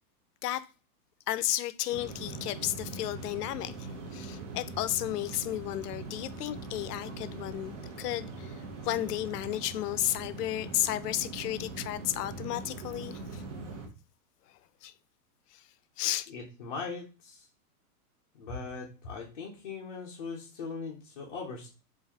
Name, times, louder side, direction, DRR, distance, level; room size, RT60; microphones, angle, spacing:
voice 1, 1.3-8.6 8.8-13.4 14.8-14.9 15.5-15.6 16.0-16.3, left 14 dB, 90° left, 0.6 m, -33 dB
sound 1, 1.9-13.9, right 3 dB, 50° right, 1.0 m, -42 dB
Bowed string instrument, 5.6-10.4, left 2 dB, ahead, 1.1 m, -57 dB
voice 2, 16.3-17.5 18.4-21.7, left 4 dB, 35° left, 0.4 m, -40 dB
3.9 x 2.4 x 2.8 m
supercardioid pair, 175°, 45 cm